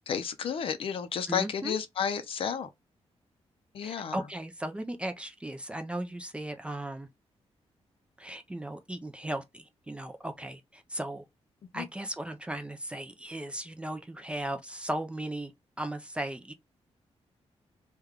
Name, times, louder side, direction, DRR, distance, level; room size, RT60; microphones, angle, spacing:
voice 1, 0.0-2.7 3.7-4.2 11.7-11.9, left 7 dB, 55° left, 0.5 m, -32 dB
voice 2, 1.3-1.8 3.8-7.1 8.2-11.2 11.7-15.5 15.8-16.5, right 1 dB, 10° right, 0.3 m, -36 dB
3.3 x 2.2 x 3.5 m
wide cardioid pair, 170°, 11 cm